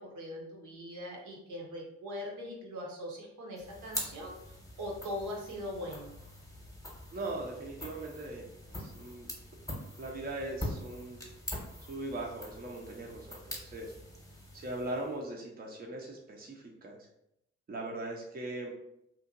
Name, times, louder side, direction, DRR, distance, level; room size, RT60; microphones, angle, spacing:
voice 1, 0.0-6.1, left 1 dB, 60° right, -1 dB, 0.8 m, -41 dB
sound 1, 3.6-15.2, left 1 dB, 10° left, 1.0 m, -44 dB
voice 2, 7.1-9.3 10.0-11.2 11.8-13.9 14.5-17.1 17.7-18.7, right 2 dB, 25° right, 0 dB, 0.6 m, -40 dB
2.8 x 2.5 x 2.5 m, 0.79 s
hypercardioid pair, 40°, 35 cm